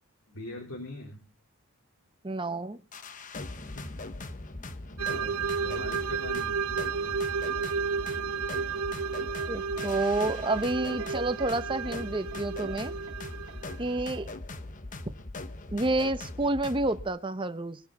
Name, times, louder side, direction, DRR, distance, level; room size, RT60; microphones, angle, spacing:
voice 1, 0.3-1.2 3.6-3.9 4.4-4.5 4.9-6.6, left 1 dB, 65° left, 4.1 m, -42 dB
voice 2, 2.2-2.8 9.5-12.9 13.8-14.3 15.7-17.8, right 2 dB, 20° right, 0.9 m, -29 dB
sound 1, 2.9-17.1, left 2 dB, 35° left, 1.1 m, -41 dB
sound 2, 5.0-14.0, right 5 dB, 90° right, 0.6 m, -32 dB
sound 3, 8.0-9.5 9.8-9.9 10.5-10.7 11.0-11.5 11.8-12.0 12.3-12.8 13.1-13.2 13.5-13.6, right 4 dB, 55° right, 2.3 m, -47 dB
21.5 x 10.5 x 4.2 m
head